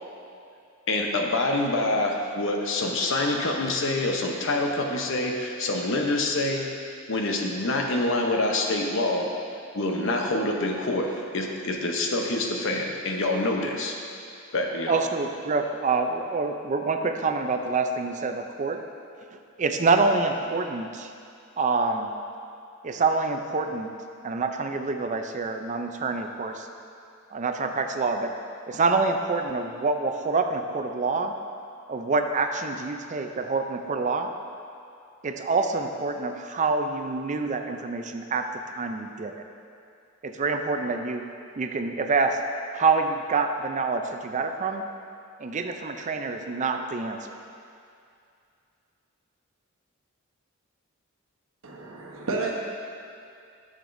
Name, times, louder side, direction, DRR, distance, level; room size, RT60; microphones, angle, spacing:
voice 1, 0.9-6.7 7.1-9.3 9.7-14.0 14.5-15.0, left 2 dB, 65° left, 1 dB, 0.8 m, -26 dB
voice 2, 14.9-18.8 19.6-21.1 21.6-22.1 22.8-23.9 24.2-26.7 27.3-28.4 28.7-31.3 31.9-34.3 35.2-39.4 40.2-41.3 41.6-42.4 42.7-44.8 45.4-47.4, right 4 dB, 35° right, 6 dB, 0.4 m, -26 dB
voice 3, 51.6-52.5, right 3 dB, 80° right, -1 dB, 1.0 m, -31 dB
11.0 x 6.6 x 2.6 m, 2.4 s
head